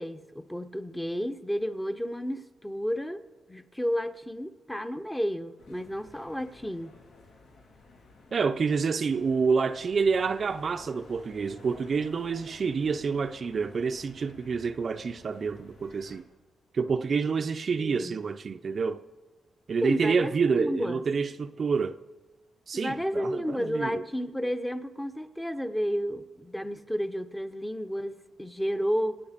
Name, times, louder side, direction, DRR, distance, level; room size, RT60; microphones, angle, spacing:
voice 1, 0.0-3.2 3.5-7.0 17.7-18.2 19.8-21.0 22.7-29.2, equal, 10° left, 0.9 m, -31 dB
sound 1, 5.6-16.2, left 2 dB, 80° left, 3.1 m, -53 dB
voice 2, 8.3-16.3 16.7-19.0 19.7-22.0 22.7-24.0, right 5 dB, 45° right, 0.5 m, -28 dB
26.0 x 8.9 x 5.1 m
cardioid pair, 95°, 0 cm